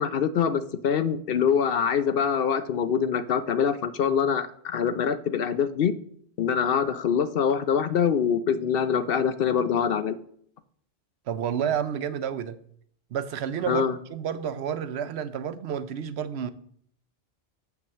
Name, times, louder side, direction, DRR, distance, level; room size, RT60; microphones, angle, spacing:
voice 1, 0.0-5.9 6.4-10.2 13.7-13.9, left 7 dB, 65° left, 0.7 m, -24 dB
voice 2, 11.3-12.6 13.1-13.8 14.1-16.5, right 8 dB, 75° right, 0.9 m, -30 dB
6.8 x 6.0 x 6.8 m
omnidirectional pair, 1.1 m